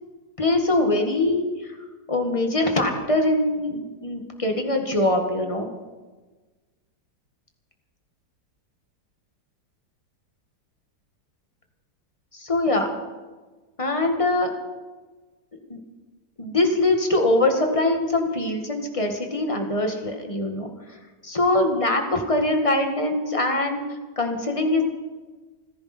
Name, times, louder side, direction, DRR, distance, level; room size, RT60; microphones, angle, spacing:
voice 1, 0.4-1.8 2.1-5.7 12.3-12.9 13.8-14.5 15.7-15.8 16.4-21.0 21.2-23.8 24.2-24.8, left 2 dB, 20° left, 3 dB, 1.9 m, -23 dB
29.5 x 10.5 x 4.4 m, 1.3 s
omnidirectional pair, 1.8 m